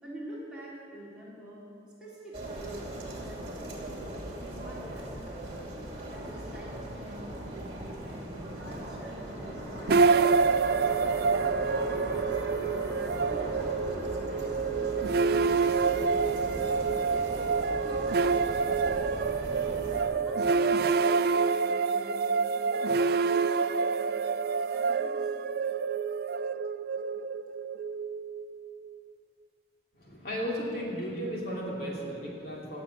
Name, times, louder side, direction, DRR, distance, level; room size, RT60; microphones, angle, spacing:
voice 1, 0.0-1.6 2.0-5.5 5.8-12.7 13.3-15.8 16.2-17.5 17.8-19.1 19.7-24.2 24.5-25.3, right 1 dB, 5° right, -9 dB, 3.9 m, -48 dB
sound 1, 2.3-20.0, right 1 dB, 30° right, 2.6 m, -39 dB
sound 2, 6.0-6.8 9.0-20.4, equal, 15° left, 3.8 m, -43 dB
sound 3, 9.9-29.0, right 5 dB, 55° right, 0.3 m, -27 dB
voice 2, 29.9-32.8, equal, 50° left, -3 dB, 2.7 m, -35 dB
18.5 x 7.2 x 8.7 m, 2.5 s
head